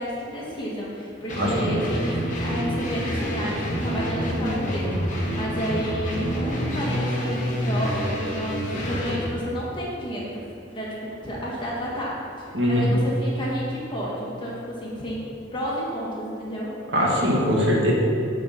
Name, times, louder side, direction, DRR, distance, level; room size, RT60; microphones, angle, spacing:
voice 1, 0.0-16.7, equal, 25° left, -5 dB, 1.6 m, -31 dB
sound 1, 1.3-9.2, equal, 40° left, 1.1 m, -27 dB
voice 2, 1.4-1.8 12.5-12.9 16.9-17.9, equal, 75° right, -3 dB, 1.7 m, -21 dB
9.1 x 4.2 x 5.7 m, 2.6 s
head